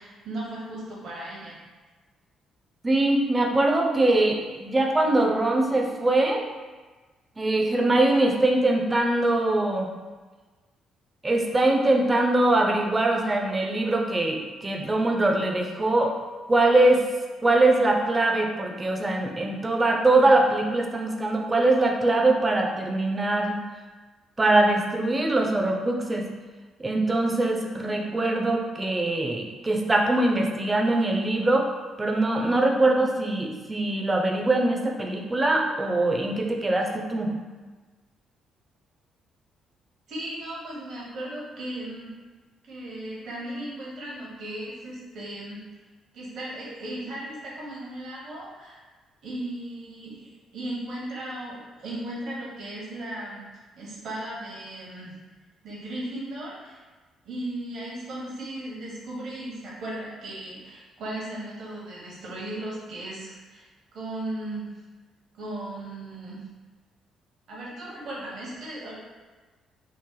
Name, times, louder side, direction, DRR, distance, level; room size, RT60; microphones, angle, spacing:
voice 1, 0.0-1.6 40.1-42.1 42.6-45.6 46.1-48.8 49.2-53.4 53.8-55.2 55.6-56.8 57.2-64.7 65.3-66.4 67.5-68.9, right 1 dB, 60° right, -5 dB, 1.0 m, -36 dB
voice 2, 2.8-6.4 7.4-9.9 11.2-16.1 16.5-17.0 17.4-23.5 24.4-26.3 26.8-31.7 32.0-37.4, right 2 dB, 25° right, 1 dB, 0.6 m, -22 dB
3.1 x 2.1 x 3.8 m, 1.3 s
hypercardioid pair, 45°, 0 cm